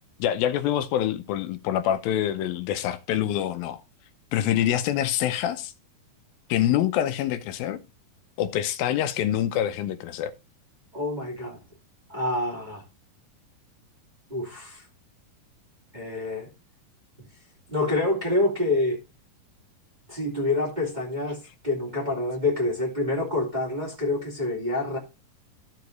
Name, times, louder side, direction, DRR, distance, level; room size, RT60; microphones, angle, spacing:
voice 1, 0.2-3.8 4.3-5.7 6.5-7.8 8.4-10.3, left 11 dB, 80° left, 2.5 m, -25 dB
voice 2, 10.9-11.6 12.1-12.8 14.3-14.8 15.9-16.5 17.2-17.3 17.7-19.0 20.1-25.0, left 2 dB, 15° right, 2.4 m, -27 dB
14.5 x 4.8 x 3.9 m
omnidirectional pair, 4.2 m